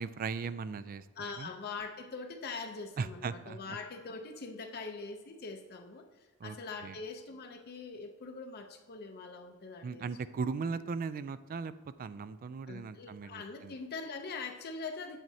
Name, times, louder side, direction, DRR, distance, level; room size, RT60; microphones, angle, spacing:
voice 1, 0.0-1.0 1.4-1.5 3.0-3.8 6.4-6.6 6.8-6.9 9.8-11.7 12.0-13.7, right 5 dB, 40° right, 15 dB, 0.3 m, -38 dB
voice 2, 1.2-6.1 6.4-10.1 12.7-15.2, left 4 dB, 50° left, 5 dB, 0.6 m, -43 dB
9.0 x 7.6 x 2.7 m, 1.4 s
head